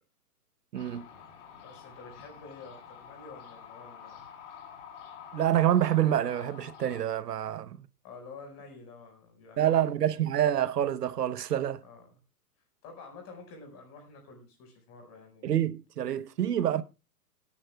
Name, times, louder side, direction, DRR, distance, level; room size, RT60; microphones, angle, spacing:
sound 1, 0.7-7.0, left 8 dB, 50° left, 3.2 m, -48 dB
voice 1, 0.7-1.0 5.3-7.8 9.6-11.8 15.4-16.8, right 11 dB, 80° right, 1.0 m, -27 dB
voice 2, 1.6-4.2 8.0-10.0 11.8-12.1 12.8-15.5, left 3 dB, 30° left, 5.1 m, -49 dB
27.0 x 10.0 x 2.3 m
hypercardioid pair, 135°, 47 cm